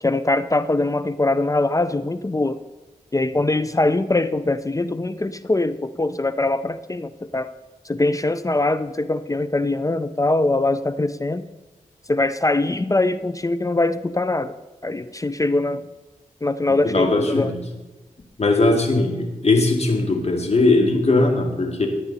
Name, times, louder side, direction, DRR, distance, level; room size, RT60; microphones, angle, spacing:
voice 1, 0.0-2.6 3.1-7.5 7.8-11.4 12.1-14.6 14.8-15.9 16.4-17.5, left 2 dB, 25° left, 13 dB, 0.5 m, -22 dB
voice 2, 16.8-17.6 18.4-21.9, left 2 dB, 50° left, 3 dB, 2.2 m, -19 dB
14.5 x 10.0 x 4.1 m, 1.2 s
cardioid pair, 55°, 14 cm